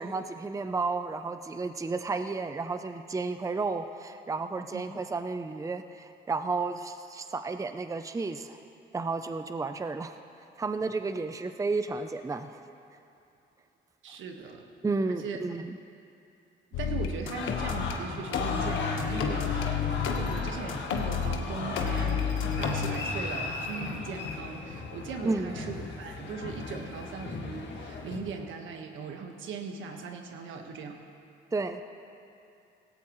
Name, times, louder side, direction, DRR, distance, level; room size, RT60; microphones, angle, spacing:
voice 1, 0.0-8.6 8.9-10.2 10.6-12.6 14.8-15.8 25.2-25.5 31.5-31.8, right 3 dB, 15° right, 8 dB, 0.6 m, -32 dB
voice 2, 14.0-14.7 15.1-15.4 16.7-31.0, right 5 dB, 75° right, 3 dB, 1.5 m, -39 dB
sound 1, 16.7-17.9 18.3-21.4 21.8-23.0, left 7 dB, 80° left, 1.3 m, -30 dB
sound 2, 17.2-28.2, left 4 dB, 65° left, 1.9 m, -36 dB
17.5 x 17.0 x 3.1 m, 2.6 s
cardioid pair, 90°, 20 cm